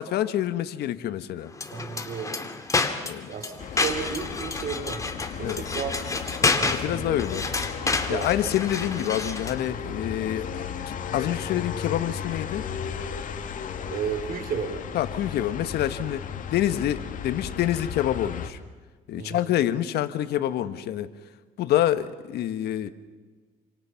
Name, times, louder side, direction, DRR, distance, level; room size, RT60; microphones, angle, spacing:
voice 1, 0.0-1.5 3.0-3.3 5.4-5.6 6.7-7.4 8.1-12.6 14.9-16.2 16.5-18.6 19.1-21.1 21.6-22.9, left 12 dB, 70° left, 11 dB, 1.5 m, -27 dB
sound 1, 1.5-9.6, left 3 dB, 20° left, 2.3 m, -29 dB
voice 2, 1.7-2.5 3.3-5.0 5.4-7.2 8.0-8.3 13.9-14.8 19.2-19.5, right 7 dB, 60° right, 8 dB, 3.7 m, -33 dB
sound 2, 3.6-18.5, left 7 dB, 50° left, 2.2 m, -35 dB
28.5 x 26.5 x 5.9 m, 1.4 s
cardioid pair, 110°, 17 cm